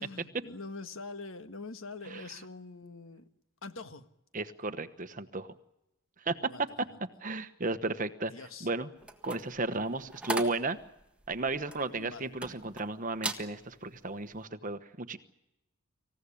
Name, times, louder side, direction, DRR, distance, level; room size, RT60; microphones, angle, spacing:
voice 1, 0.0-3.3 3.6-4.1 6.5-6.6 6.9-7.0 8.3-8.7 11.9-12.3, left 3 dB, 65° left, 10 dB, 1.5 m, -44 dB
voice 2, 4.3-5.5 6.2-6.7 7.2-8.3 8.6-8.9 9.2-10.8 11.3-15.2, right 3 dB, 35° right, 11 dB, 1.1 m, -34 dB
sound 1, 9.0-12.8 13.2-13.5 14.0-14.2, right 2 dB, 5° right, 1.6 m, -38 dB
26.5 x 16.0 x 10.0 m, 0.90 s
head